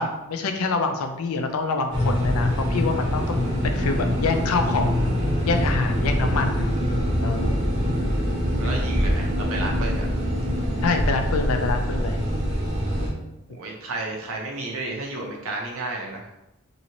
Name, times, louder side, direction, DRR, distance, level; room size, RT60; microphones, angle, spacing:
voice 1, 0.0-5.0 5.5-6.7 7.2-7.5 10.8-12.2, left 4 dB, 85° left, 5 dB, 0.4 m, -26 dB
sound 1, 1.9-13.1, equal, 45° right, 1.2 m, -24 dB
voice 2, 8.6-10.1 13.5-16.3, right 2 dB, 75° right, -1 dB, 0.7 m, -32 dB
3.0 x 2.7 x 2.8 m, 0.92 s
head